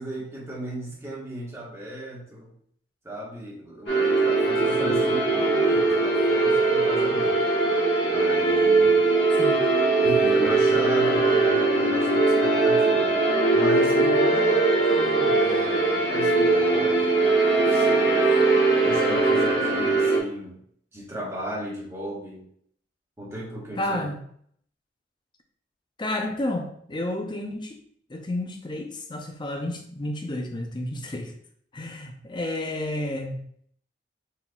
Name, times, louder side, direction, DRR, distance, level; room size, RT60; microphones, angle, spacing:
voice 1, 0.0-2.5 3.0-7.4 8.1-9.0 10.0-13.2 13.5-18.2 18.8-20.6 20.9-22.4 23.2-24.1, right 1 dB, 15° right, -5 dB, 1.3 m, -35 dB
sound 1, 3.9-20.2, right 3 dB, 70° left, 1.1 m, -21 dB
voice 2, 23.8-24.2 26.0-27.8 28.1-31.3 31.7-33.5, left 1 dB, 25° left, 3 dB, 0.5 m, -31 dB
4.3 x 4.0 x 2.3 m, 0.64 s
head